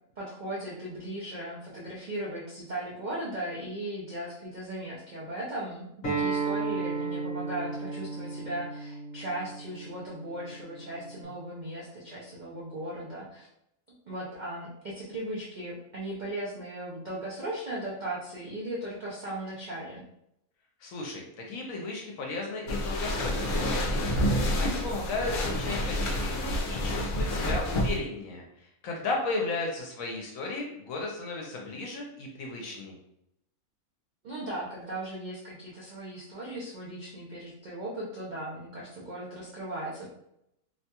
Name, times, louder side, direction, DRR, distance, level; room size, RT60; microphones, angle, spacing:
voice 1, 0.2-13.5 14.1-20.0 34.2-40.1, right 1 dB, 75° right, -6 dB, 0.4 m, -37 dB
Acoustic guitar, 6.0-11.2, right 4 dB, 45° left, 0.8 m, -34 dB
voice 2, 20.8-32.9, left 3 dB, 75° left, 0 dB, 1.0 m, -35 dB
sound 1, 22.7-28.0, equal, 90° left, 0.4 m, -28 dB
2.8 x 2.2 x 2.8 m, 0.79 s
omnidirectional pair, 1.5 m